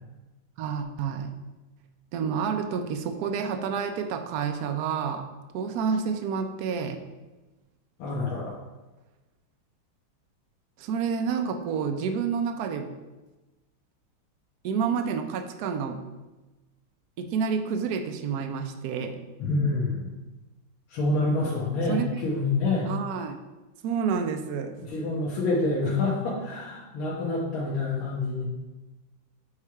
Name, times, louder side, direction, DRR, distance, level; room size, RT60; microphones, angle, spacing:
voice 1, 0.6-1.4 2.1-7.0 10.8-13.0 14.6-16.1 17.2-19.2 21.9-22.2 22.9-23.4 23.8-24.8, right 6 dB, 80° right, 6 dB, 0.8 m, -29 dB
voice 2, 8.0-8.6 19.4-20.1 20.9-22.9 24.9-28.4, left 3 dB, 85° left, -6 dB, 1.9 m, -27 dB
7.2 x 3.3 x 4.5 m, 1.1 s
omnidirectional pair, 2.3 m